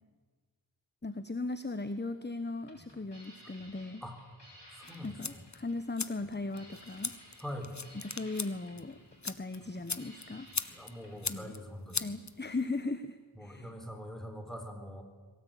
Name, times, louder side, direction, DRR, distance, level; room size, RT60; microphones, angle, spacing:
voice 1, 1.0-4.0 5.0-7.1 7.9-9.0 9.2-10.5 11.3-11.5 12.0-13.7, left 3 dB, 25° left, 11 dB, 1.1 m, -38 dB
sound 1, 2.4-11.3, equal, 65° left, 7.0 m, -56 dB
sound 2, 4.8-12.8, left 4 dB, 40° left, 1.2 m, -41 dB
voice 2, 4.8-5.4 7.4-7.7 10.7-12.1 13.4-15.0, equal, ahead, 5 dB, 4.3 m, -43 dB
22.0 x 17.5 x 9.2 m, 1.4 s
wide cardioid pair, 45°, 44 cm